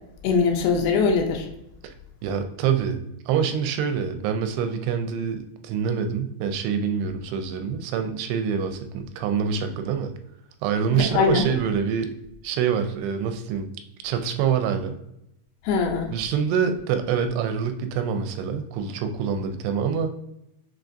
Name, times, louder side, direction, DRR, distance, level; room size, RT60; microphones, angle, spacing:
voice 1, 0.2-1.5 10.9-11.4 15.6-16.1, left 5 dB, 80° left, 2 dB, 2.0 m, -22 dB
voice 2, 2.2-3.0 3.3-10.1 10.6-12.1 12.4-13.7 14.0-14.9 16.1-20.1, right 7 dB, 85° right, 7 dB, 2.6 m, -25 dB
6.0 x 2.4 x 2.5 m, 0.81 s
omnidirectional pair, 4.6 m